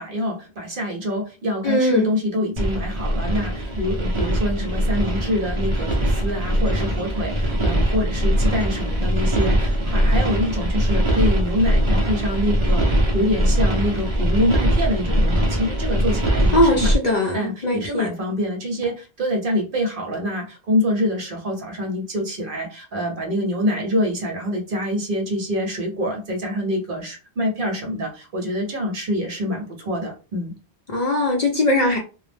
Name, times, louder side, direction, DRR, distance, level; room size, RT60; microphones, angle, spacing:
voice 1, 0.0-16.9 17.3-30.5, left 1 dB, 55° right, 0.9 m, -25 dB
voice 2, 1.6-2.1 16.5-18.1 30.9-32.0, left 1 dB, 50° left, 0.5 m, -20 dB
sound 1, 2.6-16.9, equal, 35° right, 0.5 m, -21 dB
2.2 x 2.0 x 3.2 m
omnidirectional pair, 1.1 m